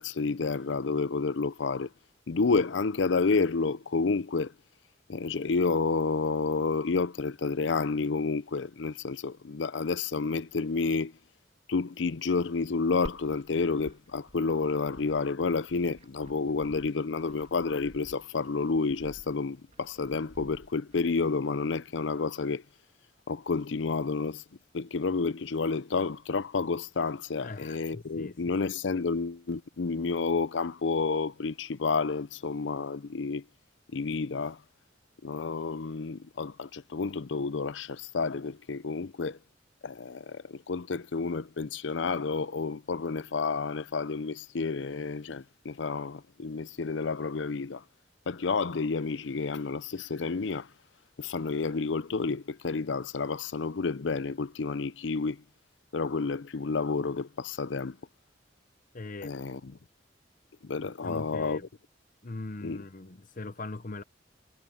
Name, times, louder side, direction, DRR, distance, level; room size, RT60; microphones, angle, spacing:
voice 1, 0.0-1.9 2.3-4.5 5.1-11.1 11.7-22.6 23.3-24.4 24.7-33.4 33.9-34.6 35.2-39.4 39.8-47.8 48.3-50.7 51.2-55.4 55.9-58.0 59.2-59.7 60.6-61.6 62.6-62.8, left 4 dB, 85° left, 0.6 m, -30 dB
Glass, 13.1-21.0, equal, 40° right, 3.1 m, -51 dB
voice 2, 27.4-28.6 58.9-59.3 60.8-61.7 62.2-64.0, left 2 dB, 45° left, 0.9 m, -41 dB
head